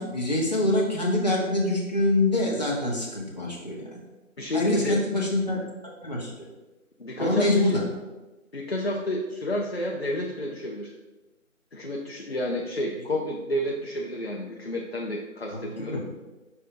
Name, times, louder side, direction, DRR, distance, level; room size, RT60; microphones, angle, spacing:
voice 1, 0.0-4.0 4.5-5.6 6.0-6.3 7.2-7.8 15.5-16.0, left 1 dB, 30° left, -4 dB, 1.2 m, -25 dB
voice 2, 4.4-5.0 7.0-7.8 8.5-10.9 11.7-16.1, left 1 dB, 45° left, -1 dB, 0.6 m, -30 dB
5.5 x 3.4 x 5.1 m, 1.1 s
figure-of-eight pair, 175°, 42 cm